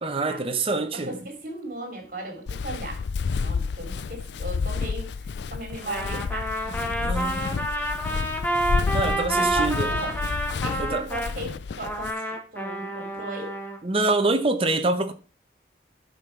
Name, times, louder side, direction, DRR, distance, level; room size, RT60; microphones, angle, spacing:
voice 1, 0.0-1.2 7.0-7.6 8.9-10.0 10.8-11.0 13.8-15.1, right 2 dB, 30° right, 0.9 m, -25 dB
voice 2, 0.9-3.0 3.3-7.3 7.5-7.7 9.3-10.1 10.6-13.5, right 1 dB, 50° right, 2.9 m, -37 dB
Walk footsteps, 2.5-12.1, left 5 dB, 70° left, 0.4 m, -30 dB
Trumpet, 5.8-11.3 11.8-13.8, right 1 dB, 10° left, 1.3 m, -29 dB
10.5 x 5.4 x 4.5 m
head